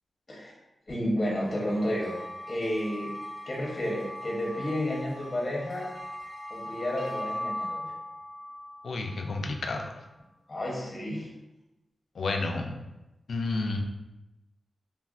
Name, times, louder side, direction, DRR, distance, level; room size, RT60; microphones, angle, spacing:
voice 1, 0.9-2.2 2.5-3.2 3.5-5.9 6.5-7.9 10.5-11.3, left 1 dB, 35° left, -4 dB, 0.7 m, -31 dB
sound 1, 1.4-10.0, left 1 dB, 65° right, 0.7 m, -40 dB
voice 2, 8.8-9.9 12.2-12.8 13.3-13.8, left 3 dB, 80° left, 3 dB, 0.3 m, -30 dB
3.2 x 2.4 x 2.3 m, 0.98 s
wide cardioid pair, 125°, 0 cm